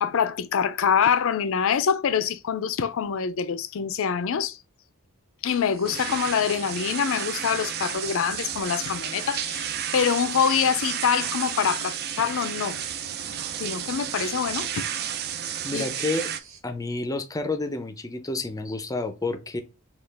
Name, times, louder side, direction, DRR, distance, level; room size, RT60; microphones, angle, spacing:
voice 1, 0.0-4.6 5.4-12.8 13.6-14.9 15.7-15.9, left 7 dB, 65° left, 0.4 m, -25 dB
sound 1, 5.5-16.6, right 6 dB, 65° right, 0.8 m, -50 dB
sound 2, 5.8-16.4, right 9 dB, 50° right, 0.4 m, -32 dB
voice 2, 15.6-16.3 16.6-19.6, left 2 dB, 15° left, 0.5 m, -29 dB
4.2 x 2.4 x 3.3 m
head